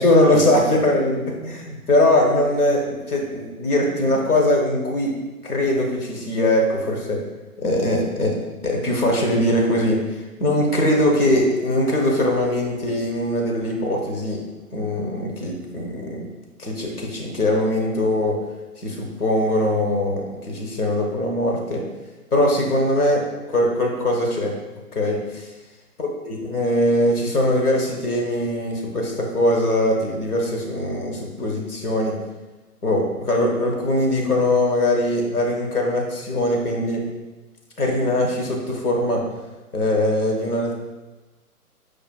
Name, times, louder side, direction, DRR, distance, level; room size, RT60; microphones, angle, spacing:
voice 1, 0.0-5.1 5.4-7.2 7.6-8.3 8.6-14.4 14.7-16.3 16.6-18.3 18.8-21.8 22.3-23.2 23.5-24.5 24.9-25.5 26.0-32.1 32.8-37.0 37.8-39.2 39.7-40.7, left 1 dB, 75° left, 0 dB, 1.0 m, -21 dB
4.8 x 2.5 x 2.2 m, 1.2 s
figure-of-eight pair, 130°, 46 cm